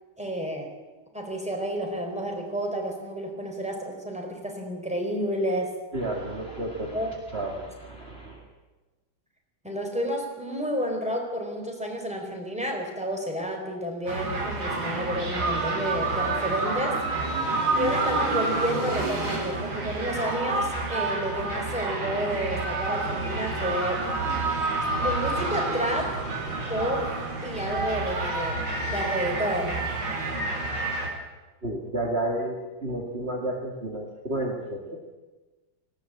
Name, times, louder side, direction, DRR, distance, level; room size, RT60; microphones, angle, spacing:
voice 1, 0.2-0.7 1.1-5.8 6.9-7.1 7.5-7.6 9.6-17.0 17.7-24.1 25.0-26.2 26.7-27.1 27.4-30.0, equal, 5° right, 2 dB, 4.2 m, -30 dB
voice 2, 5.9-8.4 31.6-35.1, right 1 dB, 30° right, 0 dB, 2.4 m, -32 dB
sound 1, 14.1-31.1, right 3 dB, 80° right, 5.0 m, -29 dB
19.0 x 16.5 x 8.9 m, 1.2 s
omnidirectional pair, 2.2 m